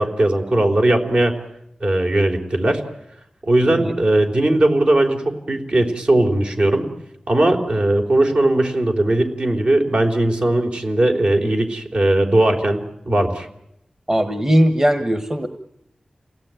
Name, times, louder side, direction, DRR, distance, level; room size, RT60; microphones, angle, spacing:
voice 1, 0.0-1.3 1.8-2.8 3.4-6.9 7.3-13.5, right 1 dB, 60° right, 3 dB, 3.8 m, -18 dB
voice 2, 14.1-15.5, equal, 20° right, 8 dB, 1.4 m, -18 dB
28.5 x 17.5 x 9.1 m, 0.80 s
wide cardioid pair, 95°, 2 cm